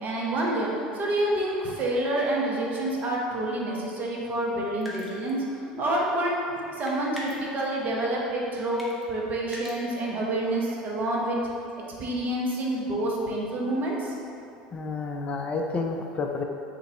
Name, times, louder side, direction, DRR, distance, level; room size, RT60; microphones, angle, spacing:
voice 1, 0.0-11.4 12.0-14.1, right 1 dB, 40° right, -3 dB, 0.9 m, -28 dB
sound 1, 4.8-5.4 6.9-7.7 8.8-9.0 9.5-9.8, equal, ahead, 1.0 m, -40 dB
voice 2, 14.7-16.4, left 3 dB, 30° left, 2 dB, 0.4 m, -30 dB
4.0 x 3.1 x 4.0 m, 2.6 s
hypercardioid pair, 70°, 4 cm